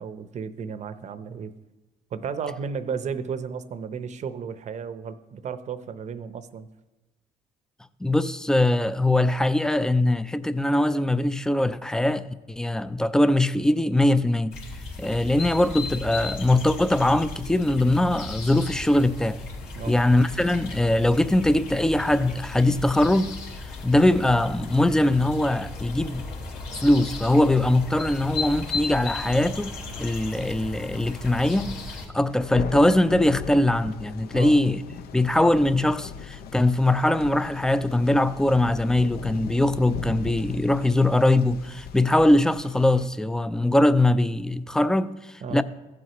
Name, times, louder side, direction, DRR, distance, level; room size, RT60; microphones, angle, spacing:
voice 1, 0.0-1.5 2.1-6.7 19.7-20.0 34.3-34.6 45.4-45.6, right 6 dB, 45° right, 0.7 m, -33 dB
voice 2, 8.0-14.5 15.0-19.4 19.9-23.4 23.8-26.3 26.7-29.7 30.0-31.8 32.1-34.8 35.1-45.6, left 1 dB, 5° left, 0.3 m, -21 dB
sound 1, 14.5-32.1, left 3 dB, 85° left, 2.6 m, -36 dB
Thunder, 32.3-43.1, left 7 dB, 65° left, 0.6 m, -38 dB
15.5 x 7.7 x 2.9 m
cardioid pair, 110°, 17 cm